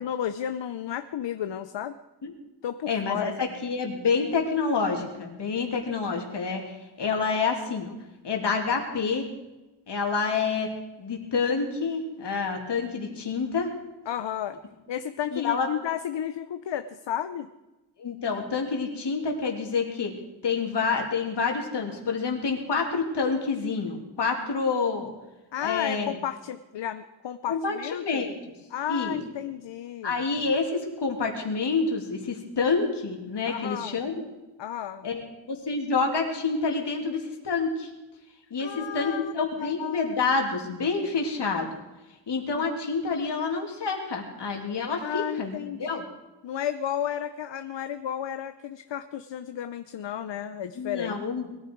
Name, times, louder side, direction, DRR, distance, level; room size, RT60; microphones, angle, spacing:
voice 1, 0.0-2.0 2.6-3.3 14.1-14.6 14.9-17.5 25.5-28.3 28.7-30.2 33.5-34.0 34.6-35.1 38.6-39.3 39.6-40.1 45.0-46.0 46.4-51.2, left 10 dB, 90° left, 10 dB, 0.8 m, -33 dB
voice 2, 2.9-7.9 8.2-9.3 9.9-10.7 11.0-13.7 15.3-15.7 18.0-20.1 20.4-25.1 25.6-26.1 27.5-28.3 28.9-29.2 30.0-34.3 35.0-37.9 38.5-41.7 42.3-46.0 50.8-51.5, left 4 dB, 70° left, 2 dB, 2.9 m, -28 dB
21.0 x 14.0 x 4.7 m, 1.1 s
wide cardioid pair, 175°, 42 cm